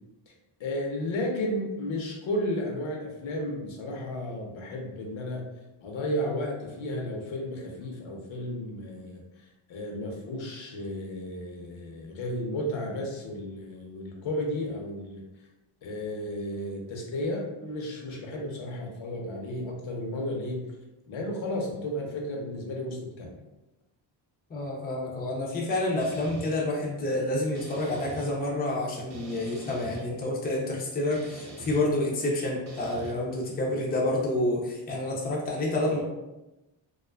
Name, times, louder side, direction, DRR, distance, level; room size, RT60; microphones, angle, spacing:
voice 1, 0.6-5.4 5.8-15.2 15.8-20.6 21.1-23.3, left 1 dB, 75° left, 0 dB, 0.7 m, -33 dB
voice 2, 24.5-36.0, left 1 dB, 20° left, -3 dB, 0.4 m, -28 dB
sound 1, 26.0-26.5 27.5-28.3 29.1-30.0 31.1-31.8 32.7-33.1, right 2 dB, 35° right, 0.6 m, -43 dB
2.4 x 2.3 x 2.2 m, 1.0 s
wide cardioid pair, 140°, 47 cm